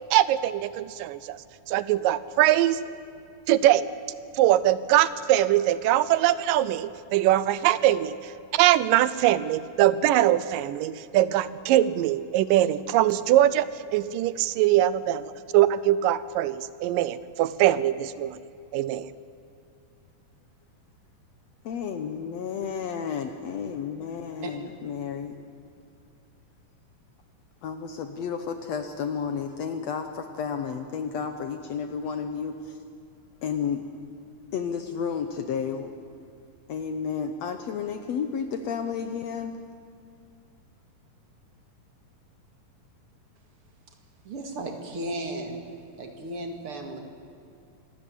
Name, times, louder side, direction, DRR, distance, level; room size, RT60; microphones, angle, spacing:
voice 1, 0.1-2.8 3.5-3.9 4.3-18.4 18.7-19.1, right 13 dB, 85° right, 16 dB, 2.3 m, -22 dB
voice 2, 21.6-25.4 27.6-32.8 33.4-33.8 34.5-35.9 36.7-39.5, left 6 dB, 65° left, 8 dB, 1.8 m, -32 dB
voice 3, 44.2-45.6 46.0-47.0, right 1 dB, 45° right, 4 dB, 2.8 m, -34 dB
26.0 x 13.0 x 9.9 m, 2.4 s
omnidirectional pair, 3.9 m